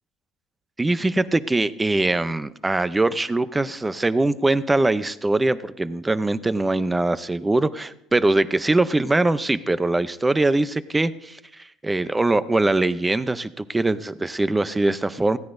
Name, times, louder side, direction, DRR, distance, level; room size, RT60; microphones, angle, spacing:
voice 1, 0.8-15.4, right 2 dB, 10° right, 14 dB, 0.6 m, -22 dB
20.0 x 16.0 x 2.6 m, 0.82 s
cardioid pair, 130°, 0 cm